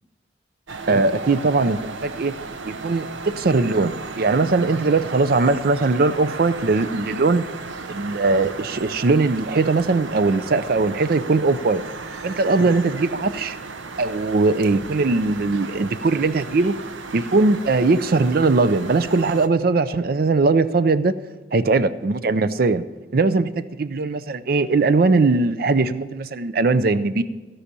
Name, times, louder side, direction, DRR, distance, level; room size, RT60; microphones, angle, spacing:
sound 1, 0.7-19.5, right 4 dB, 90° right, 0.8 m, -35 dB
voice 1, 0.9-2.3 2.7-7.5 7.9-11.8 12.2-13.6 14.0-16.8 17.1-21.2 21.5-22.8 23.1-27.2, right 3 dB, 50° right, 14 dB, 0.4 m, -20 dB
16.0 x 5.7 x 8.3 m, 1.2 s
head